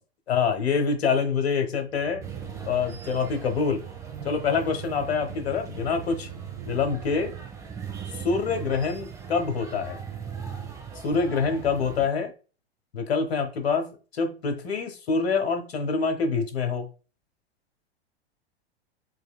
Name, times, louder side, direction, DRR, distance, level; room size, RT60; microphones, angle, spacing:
voice 1, 0.3-2.2 2.6-3.9 4.2-6.3 6.7-7.3 8.2-10.0 11.0-12.3 12.9-16.9, left 5 dB, 70° left, 1.1 m, -26 dB
sound 1, 1.9-7.5, right 7 dB, 60° right, 1.4 m, -42 dB
sound 2, 2.2-12.1, right 7 dB, 10° right, 0.7 m, -39 dB
4.7 x 3.1 x 2.2 m
figure-of-eight pair, 100°, 32 cm